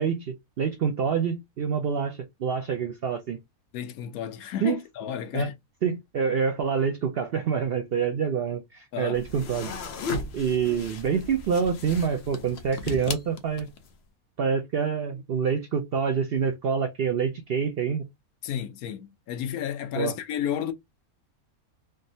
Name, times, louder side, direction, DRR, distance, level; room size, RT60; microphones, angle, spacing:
voice 1, 0.0-3.4 4.6-4.8 5.3-5.5 5.8-9.7 10.3-13.7 14.4-18.0 20.0-20.1, right 6 dB, 65° right, 0.6 m, -26 dB
voice 2, 3.7-5.5 8.9-9.2 18.4-20.7, left 9 dB, 80° left, 1.1 m, -32 dB
sound 1, 9.1-13.9, left 4 dB, 60° left, 0.7 m, -36 dB
3.5 x 2.0 x 2.6 m
omnidirectional pair, 1.5 m